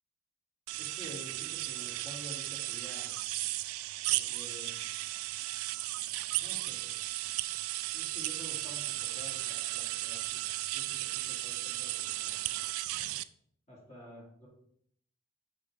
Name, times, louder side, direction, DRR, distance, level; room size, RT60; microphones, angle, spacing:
sound 1, 0.7-13.2, right 16 dB, 90° right, 0.3 m, -35 dB
voice 1, 0.8-3.1 4.1-4.7 6.4-6.9 7.9-12.7 13.7-14.5, equal, 30° left, -5 dB, 2.4 m, -50 dB
6.1 x 6.1 x 3.4 m, 0.67 s
head